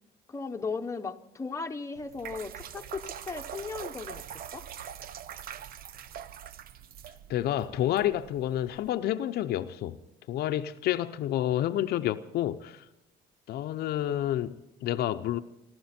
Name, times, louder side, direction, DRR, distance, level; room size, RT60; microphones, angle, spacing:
voice 1, 0.3-4.2 4.5-4.6, left 4 dB, 15° left, 1.0 m, -36 dB
sound 1, 1.9-8.9, right 9 dB, 60° right, 0.7 m, -43 dB
voice 2, 7.3-10.0 10.3-12.8 13.5-15.4, left 12 dB, 70° left, 0.7 m, -29 dB
27.0 x 12.5 x 4.4 m
cardioid pair, 110°, 17 cm